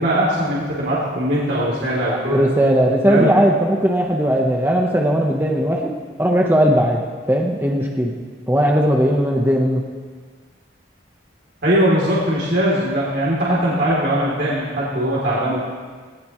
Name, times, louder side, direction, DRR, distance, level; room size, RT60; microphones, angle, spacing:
voice 1, 0.0-2.4 3.1-3.3 11.6-15.6, equal, 65° right, -7 dB, 3.4 m, -20 dB
voice 2, 2.1-5.9 6.2-7.0 7.3-8.1 8.5-9.8, equal, 10° right, -1 dB, 1.1 m, -18 dB
19.5 x 18.0 x 3.2 m, 1.5 s
head